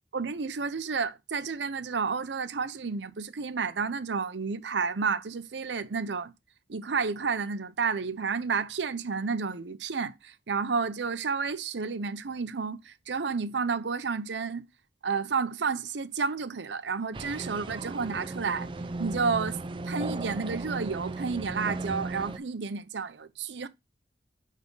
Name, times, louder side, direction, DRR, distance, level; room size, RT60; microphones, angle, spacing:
voice 1, 0.1-6.3 6.7-14.6 15.0-18.7 19.0-19.6 19.8-23.7, right 5 dB, 90° right, 0.7 m, -31 dB
sound 1, 17.1-22.4, right 2 dB, 30° right, 0.4 m, -36 dB
9.2 x 3.6 x 3.8 m
head